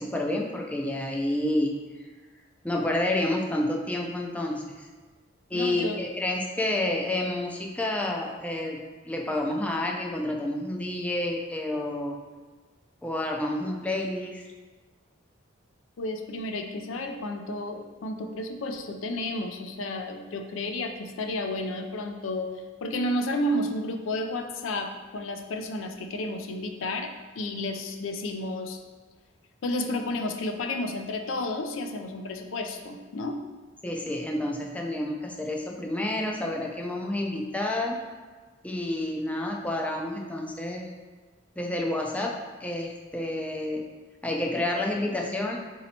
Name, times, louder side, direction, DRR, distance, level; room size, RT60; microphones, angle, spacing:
voice 1, 0.0-1.7 2.6-4.9 5.5-12.2 13.0-14.4 33.8-38.0 38.6-40.9 41.6-43.8 44.2-45.6, left 1 dB, 5° left, 0 dB, 0.4 m, -29 dB
voice 2, 5.5-6.0 16.0-22.5 22.8-28.8 29.6-33.4, left 1 dB, 80° left, 6 dB, 0.4 m, -32 dB
4.2 x 2.7 x 4.2 m, 1.4 s
head